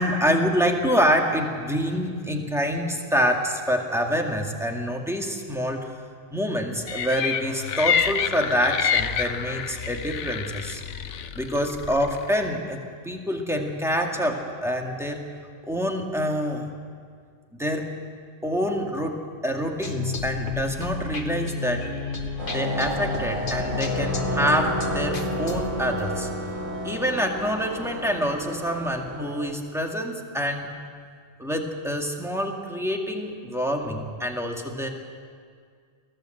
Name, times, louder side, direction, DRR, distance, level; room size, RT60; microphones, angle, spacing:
voice 1, 0.0-5.9 6.3-10.8 11.3-12.8 13.0-15.2 15.6-16.7 17.6-17.9 18.4-21.9 22.5-26.3 26.8-30.7 31.4-34.9, equal, ahead, 1 dB, 2.2 m, -26 dB
sound 1, 6.9-12.3, left 7 dB, 75° left, 1.1 m, -28 dB
sound 2, 19.8-26.3, left 5 dB, 45° left, 1.6 m, -31 dB
sound 3, 22.4-29.4, right 1 dB, 85° right, 4.0 m, -31 dB
23.5 x 16.0 x 8.0 m, 2.1 s
omnidirectional pair, 1.3 m